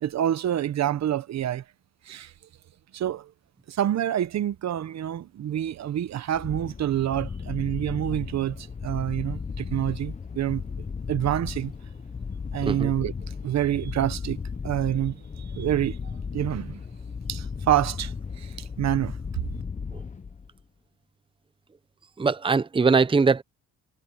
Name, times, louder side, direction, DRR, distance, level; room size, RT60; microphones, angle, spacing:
voice 1, 0.0-1.6 2.1-2.3 2.9-3.3 3.7-10.6 11.1-11.7 12.5-13.1 13.4-16.0 16.3-16.8 17.3-19.2, right 11 dB, 60° right, 1.0 m, -27 dB
sound 1, 6.3-20.6, left 5 dB, 25° left, 0.9 m, -35 dB
voice 2, 22.2-23.4, right 4 dB, 15° right, 0.8 m, -21 dB
cardioid pair, 90°, 30 cm